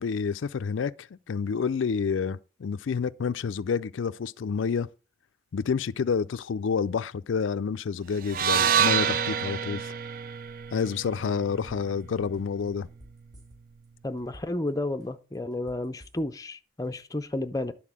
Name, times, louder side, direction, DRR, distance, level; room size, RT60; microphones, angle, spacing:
voice 1, 0.0-4.9 5.5-9.9 10.7-12.9, left 6 dB, 85° left, 0.4 m, -29 dB
sound 1, 8.3-12.5, right 8 dB, 45° right, 0.4 m, -27 dB
sound 2, 12.0-12.1 12.3-13.9 14.2-14.7 15.0-16.5 16.8-16.9, equal, 20° right, 2.7 m, -51 dB
voice 2, 14.0-17.7, left 1 dB, 20° left, 0.5 m, -32 dB
10.5 x 4.2 x 7.3 m
head